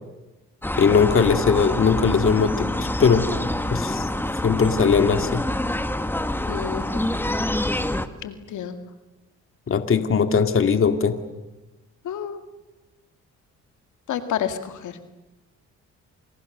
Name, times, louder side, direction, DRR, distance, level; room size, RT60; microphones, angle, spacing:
sound 1, 0.6-8.1, left 1 dB, 5° left, 1.7 m, -26 dB
voice 1, 0.8-3.3 3.7-4.1 4.4-5.4 9.7-11.2, left 6 dB, 45° left, 8 dB, 2.2 m, -19 dB
voice 2, 6.5-7.2 8.2-8.9 12.0-12.4 14.1-15.0, left 9 dB, 75° left, 8 dB, 2.3 m, -30 dB
29.0 x 28.5 x 6.7 m, 1.1 s
cardioid pair, 90°, 30 cm